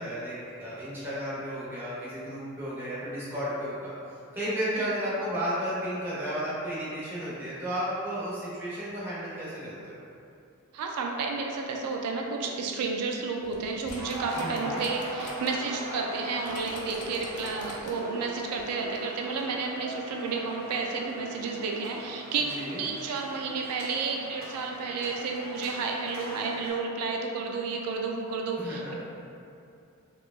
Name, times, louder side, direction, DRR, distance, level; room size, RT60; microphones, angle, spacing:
voice 1, 0.0-3.9 4.3-10.0 14.3-14.8 22.5-22.8 28.6-28.9, equal, 10° right, -10 dB, 0.9 m, -33 dB
voice 2, 10.7-28.9, right 4 dB, 85° right, 2 dB, 0.3 m, -31 dB
sound 1, 13.4-15.5 15.9-16.0 16.5-18.1 18.6-18.7, left 3 dB, 80° left, 0.6 m, -46 dB
sound 2, 14.0-26.7, right 1 dB, 65° right, 0.8 m, -40 dB
4.5 x 2.4 x 2.4 m, 2.6 s
head